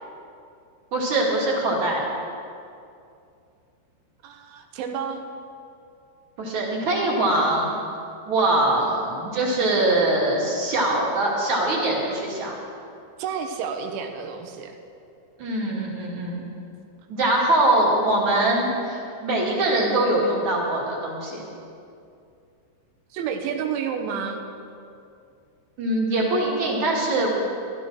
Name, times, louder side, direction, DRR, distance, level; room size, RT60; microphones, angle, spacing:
voice 1, 0.9-2.0 6.4-7.7 8.3-12.6 15.4-16.4 17.1-21.4 25.8-27.3, right 2 dB, 45° right, -4 dB, 3.0 m, -22 dB
voice 2, 4.2-5.2 13.2-14.8 23.1-24.4, right 7 dB, 80° right, 4 dB, 3.5 m, -30 dB
16.0 x 12.5 x 6.2 m, 2.5 s
omnidirectional pair, 5.6 m